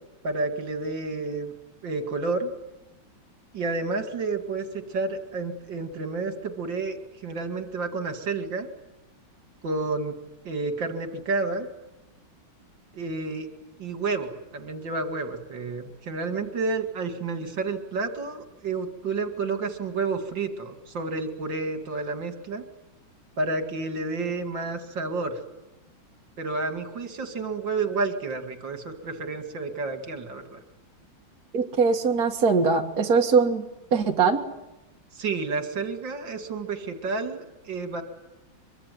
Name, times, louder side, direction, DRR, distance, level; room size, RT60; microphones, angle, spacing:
voice 1, 0.2-1.5 1.8-2.5 3.5-7.0 7.2-8.7 9.6-10.1 10.4-11.7 12.9-13.5 13.8-22.6 23.4-25.4 26.4-30.6 35.2-38.0, right 3 dB, 65° right, 8 dB, 3.0 m, -30 dB
voice 2, 31.5-33.6 33.9-34.4, right 5 dB, 50° right, 3 dB, 2.1 m, -21 dB
25.0 x 23.0 x 9.4 m, 0.97 s
omnidirectional pair, 2.2 m